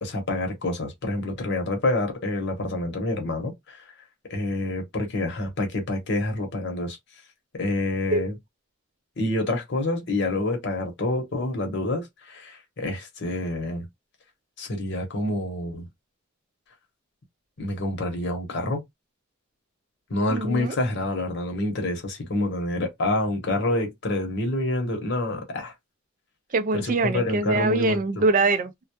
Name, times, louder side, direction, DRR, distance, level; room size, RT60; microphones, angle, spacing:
voice 1, 0.0-3.8 4.3-7.0 7.5-8.3 9.2-13.9 14.6-15.8 17.6-18.8 20.1-25.7 26.7-28.0, left 1 dB, 55° left, 0.9 m, -27 dB
voice 2, 20.3-20.8 26.5-28.8, right 3 dB, 40° right, 0.4 m, -23 dB
2.2 x 2.1 x 2.8 m
head